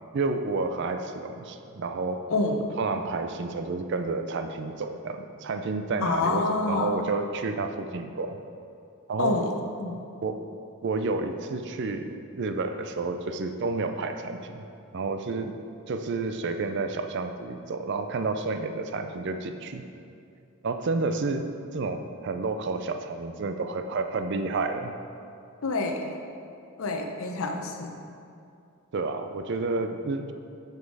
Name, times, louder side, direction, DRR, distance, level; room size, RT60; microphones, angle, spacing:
voice 1, 0.1-2.3 2.8-8.4 9.1-9.4 10.2-10.5 10.8-15.5 15.9-19.9 20.6-24.9 28.9-30.3, right 3 dB, 55° right, 7 dB, 0.4 m, -30 dB
voice 2, 6.0-6.9 9.2-10.0 25.6-26.1 26.8-27.9, left 3 dB, 70° left, 3 dB, 0.7 m, -27 dB
6.2 x 5.3 x 4.7 m, 2.5 s
head